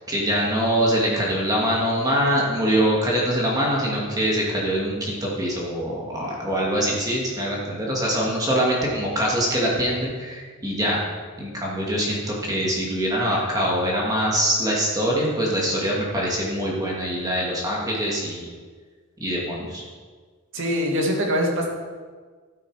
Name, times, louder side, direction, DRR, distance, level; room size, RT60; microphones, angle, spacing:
voice 1, 0.1-11.0 11.4-18.5 19.2-19.8, equal, 15° right, -4 dB, 2.2 m, -24 dB
voice 2, 20.5-21.7, equal, 60° right, 0 dB, 2.4 m, -23 dB
13.5 x 8.4 x 4.9 m, 1.5 s
head